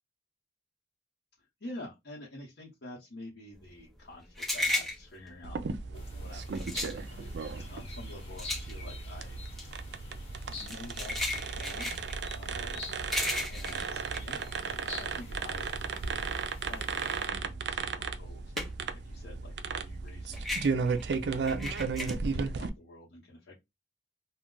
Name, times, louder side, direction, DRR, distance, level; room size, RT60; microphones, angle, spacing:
voice 1, 1.6-9.4 10.5-12.1 12.3-12.8 13.5-13.9 14.2-15.7 16.7-18.5 19.0-20.5 21.3-23.6, left 2 dB, 65° left, 0.9 m, -48 dB
sound 1, 3.6-15.2 15.6-19.0 19.3-22.1, left 2 dB, ahead, 0.8 m, -36 dB
sound 2, 5.4-22.7, right 4 dB, 65° right, 0.4 m, -35 dB
sound 3, 5.9-17.3, left 2 dB, 35° left, 1.0 m, -47 dB
2.3 x 2.2 x 3.7 m
head